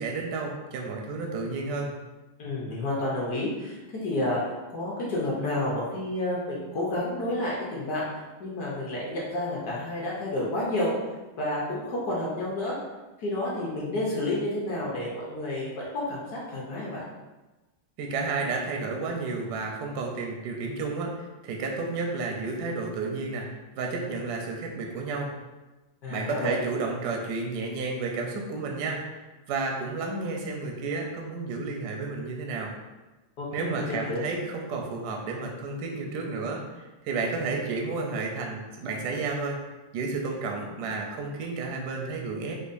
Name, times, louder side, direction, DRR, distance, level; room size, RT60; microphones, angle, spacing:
voice 1, 0.0-1.9 18.0-23.5 23.8-25.3 26.1-32.7 33.5-39.6 39.9-42.5, right 3 dB, 75° right, 0 dB, 0.9 m, -31 dB
voice 2, 2.4-4.4 4.7-8.0 8.4-10.9 11.4-12.7 13.2-17.0 26.0-26.5 33.4-34.2, left 1 dB, 65° left, -5 dB, 1.1 m, -30 dB
5.2 x 2.0 x 2.5 m, 1.1 s
omnidirectional pair, 2.1 m